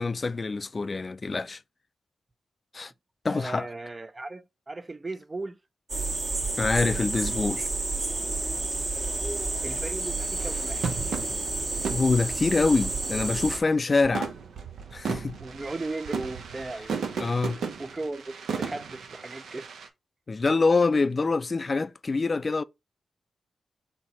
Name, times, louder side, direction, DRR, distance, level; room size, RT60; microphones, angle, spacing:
voice 1, 0.0-1.6 2.7-2.9 3.2-3.7 6.6-7.7 11.9-14.3 14.9-15.4 17.2-17.6 20.3-22.6, left 3 dB, 45° left, 0.3 m, -25 dB
voice 2, 3.3-5.6 9.6-10.9 15.4-17.0 17.8-19.7, right 2 dB, 35° right, 0.4 m, -37 dB
sound 1, 5.9-13.6, right 3 dB, 55° right, 1.3 m, -30 dB
sound 2, 10.4-13.7 14.0-19.9, right 6 dB, 80° right, 0.6 m, -35 dB
4.2 x 2.8 x 4.1 m
supercardioid pair, 50°, 0 cm